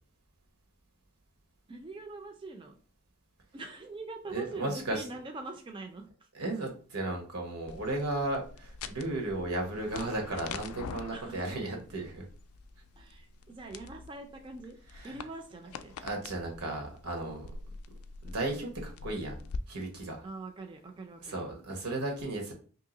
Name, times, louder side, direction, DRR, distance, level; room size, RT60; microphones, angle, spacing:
voice 1, 1.7-2.8 3.5-6.3 11.1-11.7 13.0-14.8 15.0-15.9 20.2-21.4, right 3 dB, 20° right, 4 dB, 0.3 m, -43 dB
voice 2, 4.3-5.0 6.3-12.3 14.9-15.1 16.0-17.5 18.2-19.4 19.7-20.2 21.2-22.5, right 2 dB, 90° right, 1 dB, 1.1 m, -35 dB
sound 1, 7.7-19.6, left 4 dB, 80° left, 0.3 m, -45 dB
2.9 x 2.8 x 3.8 m, 0.41 s
head